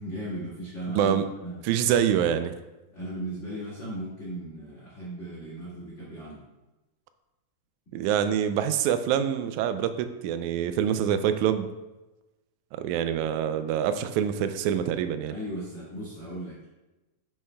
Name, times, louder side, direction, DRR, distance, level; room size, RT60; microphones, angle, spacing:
voice 1, 0.0-1.2 1.4-1.6 2.9-6.4 15.3-16.7, right 1 dB, 30° left, -8 dB, 1.8 m, -36 dB
voice 2, 1.6-2.5 7.9-11.7 12.7-15.4, right 9 dB, 80° right, 10 dB, 1.9 m, -25 dB
9.1 x 7.8 x 2.2 m, 1.1 s
omnidirectional pair, 3.6 m